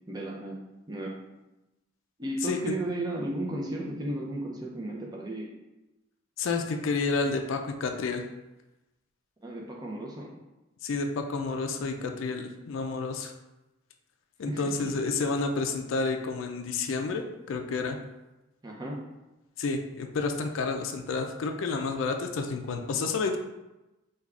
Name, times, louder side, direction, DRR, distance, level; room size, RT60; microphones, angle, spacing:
voice 1, 0.1-0.6 0.9-1.1 2.2-5.5 9.4-10.3 14.5-14.6 18.6-19.0, right 1 dB, 20° right, -2 dB, 0.5 m, -34 dB
voice 2, 2.4-2.8 6.4-8.2 10.8-13.3 14.4-18.0 19.6-23.4, left 4 dB, 70° left, 4 dB, 0.3 m, -30 dB
3.4 x 2.3 x 3.6 m, 1.0 s
head